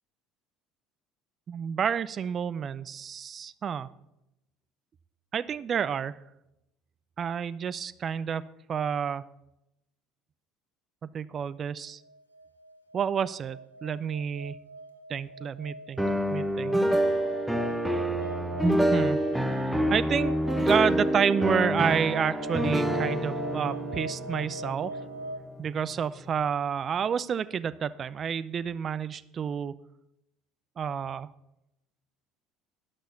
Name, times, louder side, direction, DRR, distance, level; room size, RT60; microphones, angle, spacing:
voice 1, 1.5-3.9 5.3-6.2 7.2-9.2 11.0-12.0 12.9-14.6 15.1-16.0 16.3-16.8 18.9-19.2 19.9-24.9 25.6-29.7 30.8-31.3, right 7 dB, 35° right, 15 dB, 0.5 m, -29 dB
sound 1, 12.0-25.4, right 1 dB, 85° left, 0.6 m, -42 dB
sound 2, 16.0-25.9, equal, 5° right, 0.9 m, -27 dB
11.5 x 6.2 x 6.7 m, 0.85 s
figure-of-eight pair, 60°, 0 cm